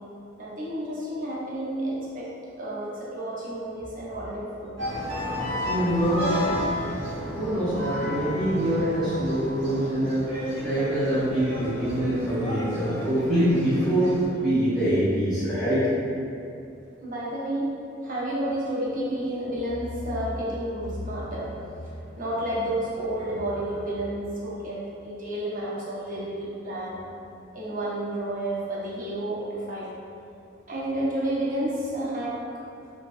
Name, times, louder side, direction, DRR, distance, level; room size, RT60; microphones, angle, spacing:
voice 1, 0.4-2.3 2.6-4.7 17.0-17.7 18.0-27.1 27.5-29.9 30.7-32.3, right 1 dB, 45° right, -7 dB, 0.6 m, -30 dB
sound 1, 4.8-14.3, equal, 90° right, 1.0 m, -32 dB
voice 2, 5.6-6.3 7.3-10.3 10.6-14.1 14.4-15.8, right 1 dB, ahead, -14 dB, 0.6 m, -24 dB
2.5 x 2.1 x 2.4 m, 2.6 s
head